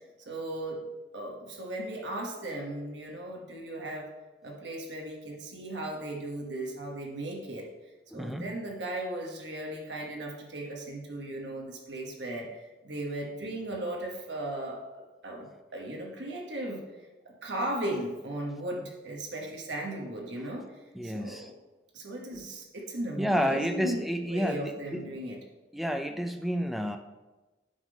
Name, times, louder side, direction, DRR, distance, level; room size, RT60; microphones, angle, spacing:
voice 1, 0.3-0.9 1.1-4.1 4.4-7.7 8.1-16.8 17.2-20.6 21.0-21.6 21.9-25.4, right 1 dB, 75° right, 0 dB, 1.2 m, -37 dB
voice 2, 8.1-8.5 20.9-21.5 23.2-25.0 25.7-27.0, equal, ahead, 6 dB, 0.4 m, -30 dB
9.2 x 3.7 x 5.1 m, 1.1 s
head